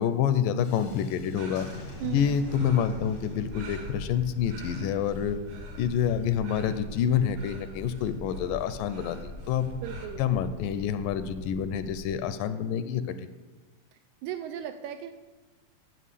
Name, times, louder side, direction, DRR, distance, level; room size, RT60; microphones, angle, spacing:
voice 1, 0.0-1.7 2.0-5.4 5.8-9.2 9.5-9.8 10.2-13.3, left 8 dB, 85° left, 11 dB, 2.1 m, -27 dB
Thunderstorm, 0.6-12.1, left 2 dB, 55° left, 0.8 m, -42 dB
sound 1, 1.4-10.1, right 4 dB, 60° right, 2.9 m, -50 dB
voice 2, 2.0-2.4 9.8-10.4 14.2-15.1, right 9 dB, 85° right, 8 dB, 1.7 m, -36 dB
9.3 x 6.1 x 8.3 m, 1.3 s
omnidirectional pair, 3.9 m